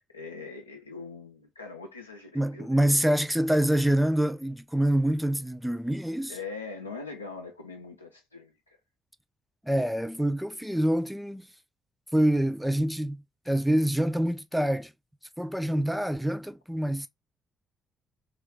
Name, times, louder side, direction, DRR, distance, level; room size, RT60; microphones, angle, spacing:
voice 1, 0.0-3.0 6.3-8.8, left 4 dB, 90° left, 0.5 m, -42 dB
voice 2, 2.4-6.3 9.6-11.5 12.1-14.9 15.4-17.1, right 1 dB, 5° right, 0.4 m, -26 dB
3.1 x 2.4 x 3.2 m
figure-of-eight pair, 40°, 0 cm